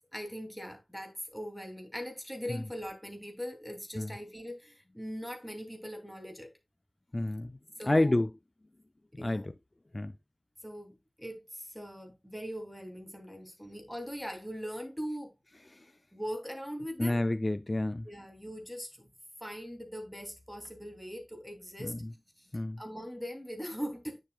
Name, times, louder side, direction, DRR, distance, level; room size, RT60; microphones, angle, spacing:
voice 1, 0.1-6.5 7.8-8.2 9.2-9.5 10.6-15.3 16.1-17.2 18.0-19.1 19.4-22.0 22.4-22.5 22.8-24.2, equal, ahead, 2.5 m, -41 dB
voice 2, 7.1-7.6 7.8-8.3 9.1-9.5 9.9-10.1 15.7-15.8 17.0-18.1 21.8-22.1 22.5-22.8, left 1 dB, 35° left, 0.4 m, -29 dB
9.6 x 7.1 x 2.2 m
wide cardioid pair, 75°, 0 cm